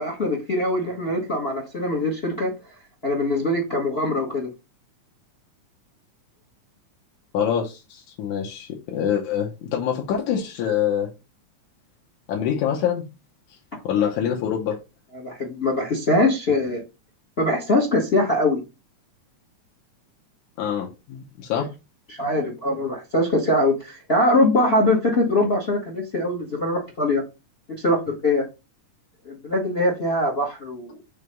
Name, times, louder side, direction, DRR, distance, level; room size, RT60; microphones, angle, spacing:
voice 1, 0.0-2.5 3.0-4.5 15.1-16.8 17.4-18.6 22.1-27.2 27.8-28.4 29.2-31.0, left 1 dB, 60° left, 0.6 m, -22 dB
voice 2, 7.3-11.1 12.3-13.1 13.8-14.8 20.6-21.7, left 9 dB, 80° left, 2.4 m, -25 dB
5.6 x 3.3 x 5.2 m
omnidirectional pair, 3.4 m